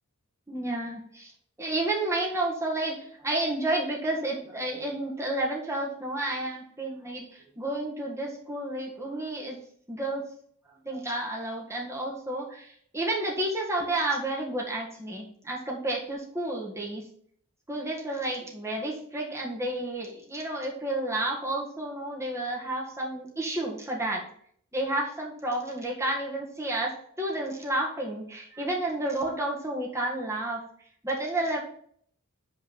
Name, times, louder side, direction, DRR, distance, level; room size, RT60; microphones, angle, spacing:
voice 1, 0.5-1.3 1.6-9.6 9.9-10.2 10.8-17.0 17.7-24.2 24.7-30.6 31.0-31.6, right 1 dB, 15° right, -2 dB, 1.6 m, -31 dB
5.6 x 4.6 x 5.8 m, 0.63 s
head